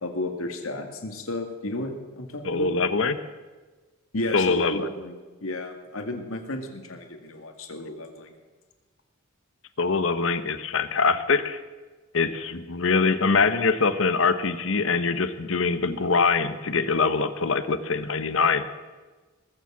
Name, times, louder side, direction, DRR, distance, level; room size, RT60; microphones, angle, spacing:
voice 1, 0.0-2.7 4.1-8.3, left 2 dB, 85° left, 5 dB, 2.0 m, -33 dB
voice 2, 2.4-3.2 4.3-4.8 9.8-11.6 12.1-18.6, left 4 dB, 70° left, 11 dB, 0.9 m, -23 dB
20.5 x 7.4 x 7.3 m, 1.3 s
head